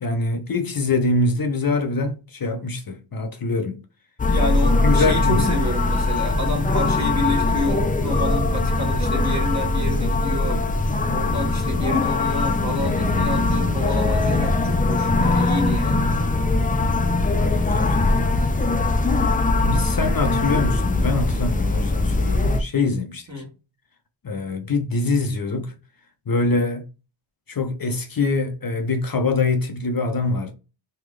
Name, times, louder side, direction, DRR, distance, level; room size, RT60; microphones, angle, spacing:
voice 1, 0.0-3.8 4.8-5.6 11.0-11.1 17.4-18.4 19.6-23.3 24.2-25.7 26.3-26.9 27.5-30.5, left 3 dB, 50° left, 0.7 m, -24 dB
sound 1, 4.2-22.6, left 2 dB, 20° left, 0.4 m, -21 dB
voice 2, 4.3-10.6 11.1-16.0 23.3-23.5, left 1 dB, 35° right, 1.4 m, -29 dB
3.3 x 2.3 x 3.5 m
cardioid pair, 45°, 46 cm